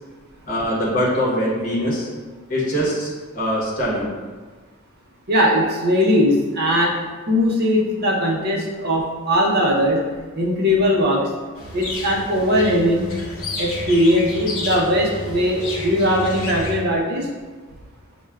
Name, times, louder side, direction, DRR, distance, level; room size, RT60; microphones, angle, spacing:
voice 1, 0.5-2.1 2.5-4.1, equal, 40° left, -6 dB, 0.9 m, -22 dB
voice 2, 5.3-6.9 7.3-10.0 10.3-11.3 11.7-13.1 13.6-17.3, equal, 45° right, -2 dB, 0.6 m, -19 dB
sound 1, 11.6-16.8, left 2 dB, 65° left, 0.8 m, -31 dB
5.9 x 2.1 x 2.3 m, 1.4 s
head